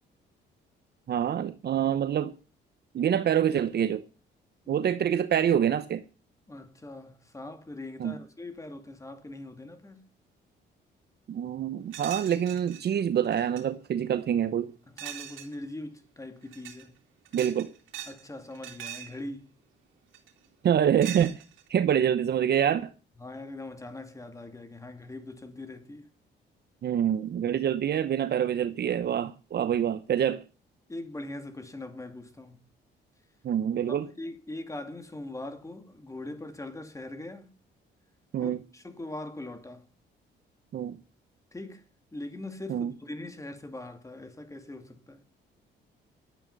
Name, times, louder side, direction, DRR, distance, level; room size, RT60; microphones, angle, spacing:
voice 1, 1.1-2.3 2.9-4.0 4.7-6.0 8.0-8.2 11.3-14.7 17.3-17.7 20.6-21.4 21.7-22.9 26.8-30.4 33.4-34.1 38.3-38.6 40.7-41.0 42.7-42.9, right 9 dB, 55° right, 0.9 m, -26 dB
voice 2, 6.5-10.0 14.9-17.0 18.1-19.5 23.2-26.1 30.9-32.7 33.8-37.5 38.4-39.9 41.5-45.2, left 2 dB, 15° left, 2.3 m, -41 dB
sound 1, 11.9-12.8 13.2-13.6 15.0-15.6 16.4-16.8 17.3-18.2 18.5-19.2 20.1-20.5 21.0-21.7, right 11 dB, 80° right, 2.6 m, -41 dB
11.5 x 8.8 x 5.4 m
cardioid pair, 90°, 20 cm